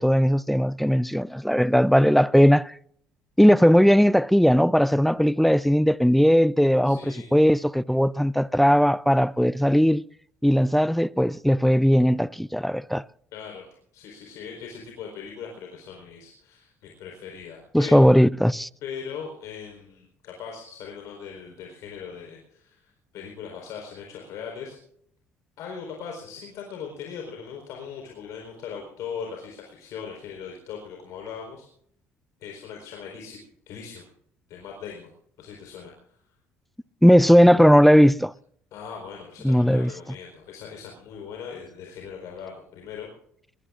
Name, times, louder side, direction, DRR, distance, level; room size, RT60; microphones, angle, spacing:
voice 1, 0.0-2.8 3.4-10.0 10.4-13.0 17.7-18.7 37.0-38.3 39.4-39.9, equal, ahead, 0.5 m, -18 dB
voice 2, 6.8-7.3 13.3-13.7 13.9-17.9 18.8-24.8 25.6-31.7 32.4-33.4 33.7-34.1 34.5-35.1 35.4-36.1 38.7-43.1, left 6 dB, 70° left, 4.4 m, -39 dB
22.0 x 20.0 x 2.5 m
supercardioid pair, 70°, 6 cm